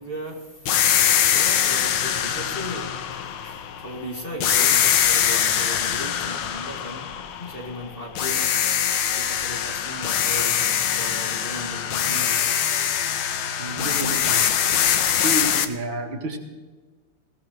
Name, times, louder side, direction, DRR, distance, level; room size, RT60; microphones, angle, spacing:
voice 1, 0.0-13.8, equal, 25° left, 2.4 m, -37 dB
sound 1, 0.7-3.9 4.4-7.8 8.2-15.7, left 9 dB, 80° left, 1.8 m, -23 dB
voice 2, 13.6-14.4 15.2-16.4, right 1 dB, 75° right, 2.7 m, -29 dB
20.5 x 17.5 x 3.2 m
omnidirectional pair, 2.2 m